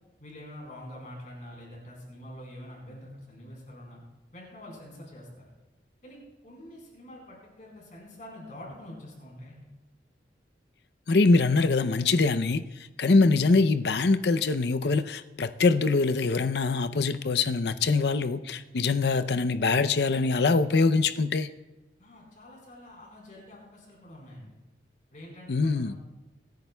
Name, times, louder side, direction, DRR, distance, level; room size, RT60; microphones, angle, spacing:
voice 1, 0.2-4.0 4.3-5.3 6.0-6.2 6.4-9.6 22.0-24.5 25.1-26.0, left 1 dB, 45° left, -2 dB, 4.2 m, -46 dB
voice 2, 11.1-12.6 13.0-21.5 25.5-25.9, left 3 dB, 65° left, 11 dB, 0.6 m, -23 dB
26.0 x 10.5 x 2.3 m, 1.2 s
head